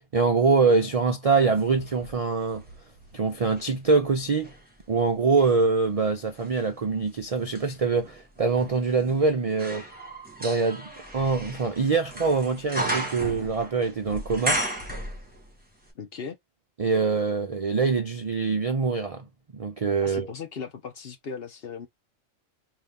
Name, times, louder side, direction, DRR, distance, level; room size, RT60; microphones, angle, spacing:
voice 1, 0.1-2.6 3.1-4.5 4.9-9.8 10.4-14.6 16.8-19.3 19.5-20.3, right 4 dB, 60° right, 0.3 m, -24 dB
sound 1, 1.5-3.7 4.3-15.6 15.9-16.0, right 1 dB, 5° right, 1.5 m, -35 dB
voice 2, 15.9-16.4 20.0-21.9, left 6 dB, 50° left, 1.0 m, -37 dB
4.0 x 2.6 x 3.6 m
omnidirectional pair, 1.4 m